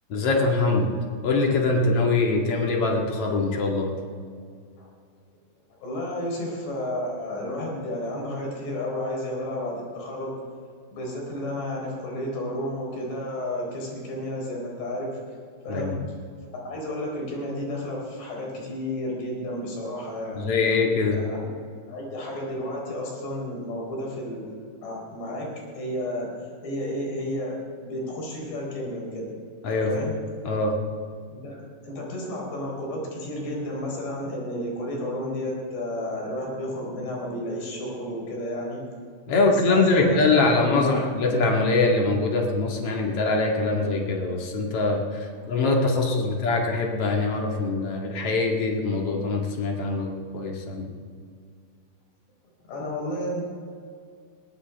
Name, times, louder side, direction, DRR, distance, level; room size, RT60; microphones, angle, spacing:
voice 1, 0.1-0.9 1.2-3.9 15.7-16.0 20.3-21.2 29.6-30.0 30.4-30.7 39.3-50.9, left 3 dB, 45° left, 0 dB, 2.3 m, -23 dB
voice 2, 5.8-10.4 10.9-15.2 15.6-16.0 16.5-20.6 21.2-21.5 21.8-24.6 24.8-26.3 26.6-29.4 29.9-30.2 31.3-38.8 39.4-41.0 52.7-53.4, left 1 dB, 80° left, -2 dB, 6.4 m, -32 dB
20.5 x 17.5 x 3.5 m, 2.1 s
omnidirectional pair, 4.8 m